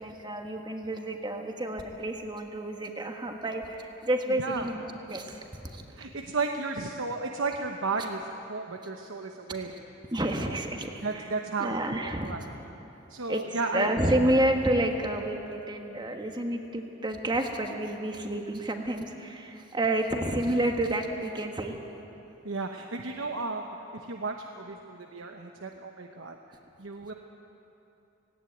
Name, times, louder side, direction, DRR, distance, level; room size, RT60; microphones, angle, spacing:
voice 1, 0.0-5.8 10.1-11.3 11.6-12.4 13.3-21.8, right 1 dB, 20° right, 3 dB, 1.4 m, -30 dB
voice 2, 4.4-4.7 5.9-9.7 10.4-10.6 11.0-12.5 13.1-13.9 22.4-26.4 26.8-27.1, right 3 dB, 80° right, 3 dB, 1.0 m, -34 dB
18.0 x 17.5 x 9.3 m, 3.0 s
head